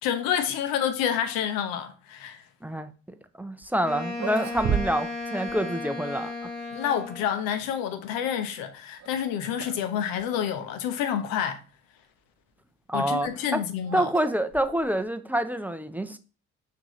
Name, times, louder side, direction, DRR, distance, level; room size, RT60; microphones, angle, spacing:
voice 1, 0.0-2.4 6.7-11.6 12.9-14.1, left 9 dB, 85° left, 0.7 m, -28 dB
voice 2, 3.4-6.5 12.9-13.6 13.9-16.2, right 1 dB, 5° right, 0.5 m, -27 dB
sound 1, 3.6-3.7 4.1-5.2 5.5-5.6 6.5-7.2 9.0-9.2 9.6-9.9 10.2-10.3 11.1-11.2 12.9-15.1, right 8 dB, 55° right, 0.7 m, -34 dB
Wind instrument woodwind instrument, 3.8-7.4, left 3 dB, 30° left, 1.9 m, -35 dB
5.9 x 2.8 x 3.1 m
supercardioid pair, 55°, 34 cm